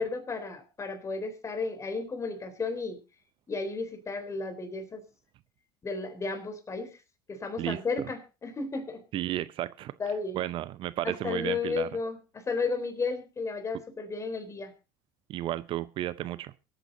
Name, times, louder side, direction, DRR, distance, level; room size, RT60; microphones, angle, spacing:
voice 1, 0.0-3.0 3.5-5.0 5.8-6.9 7.3-9.0 10.0-10.4 11.2-14.7, left 4 dB, 30° left, 7 dB, 3.8 m, -33 dB
voice 2, 9.1-9.9 10.3-11.9 15.3-16.5, right 14 dB, 55° right, 17 dB, 0.6 m, -33 dB
24.0 x 9.1 x 2.7 m, 0.31 s
hypercardioid pair, 75°, 11 cm